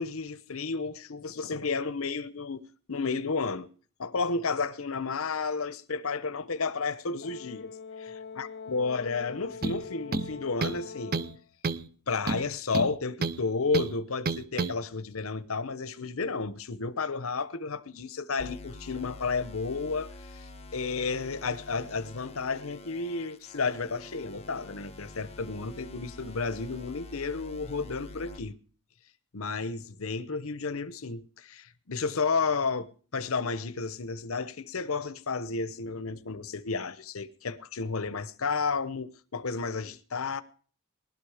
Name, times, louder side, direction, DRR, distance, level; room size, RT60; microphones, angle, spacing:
voice 1, 0.0-3.7 4.0-11.2 12.1-28.5 29.3-40.4, left 4 dB, 75° left, 0.9 m, -32 dB
Brass instrument, 7.2-11.4, left 6 dB, 55° left, 0.7 m, -43 dB
sound 1, 9.6-9.8 10.1-10.8 11.1-11.4 11.6-11.9 12.3-13.4 13.7-13.9 14.3-14.7, right 4 dB, 45° right, 0.8 m, -30 dB
sound 2, 18.4-28.4, left 2 dB, 30° left, 1.4 m, -46 dB
20.0 x 12.0 x 4.9 m
head